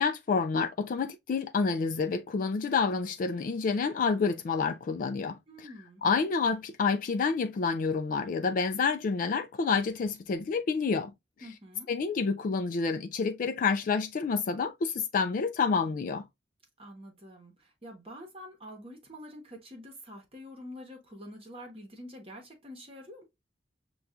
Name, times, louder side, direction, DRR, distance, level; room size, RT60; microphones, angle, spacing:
voice 1, 0.0-5.7 6.0-11.1 11.9-16.3, left 5 dB, 50° left, 0.3 m, -28 dB
voice 2, 5.5-6.0 11.4-11.9 16.8-23.2, equal, 35° right, 1.0 m, -46 dB
6.7 x 2.3 x 2.3 m
head